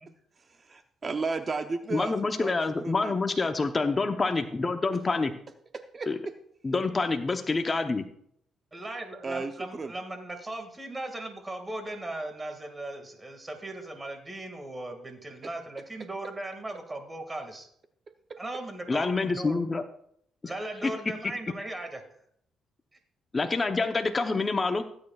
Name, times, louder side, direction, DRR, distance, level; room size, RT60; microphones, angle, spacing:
voice 1, 0.4-2.6 2.8-3.1 5.7-6.1 9.2-9.9, right 4 dB, 35° right, 8 dB, 0.7 m, -34 dB
voice 2, 1.9-5.3 6.1-6.2 6.6-8.1 18.9-19.8 23.3-24.8, left 3 dB, 30° left, 6 dB, 0.8 m, -27 dB
voice 3, 8.7-17.7 18.4-19.6 20.4-22.0, right 1 dB, 20° right, 5 dB, 2.0 m, -38 dB
17.0 x 8.7 x 2.4 m, 0.68 s
cardioid pair, 90°, 0 cm